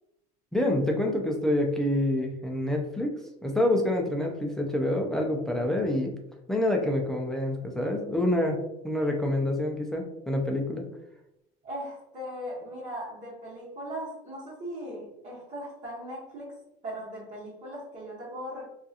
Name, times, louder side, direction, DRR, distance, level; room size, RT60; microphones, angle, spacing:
voice 1, 0.5-3.1 3.4-6.1 6.5-10.8, left 1 dB, 5° left, 1 dB, 0.4 m, -27 dB
voice 2, 11.6-16.6 16.8-18.7, equal, 40° right, -10 dB, 1.1 m, -38 dB
2.7 x 2.4 x 2.4 m, 0.84 s
cardioid pair, 135°, 18 cm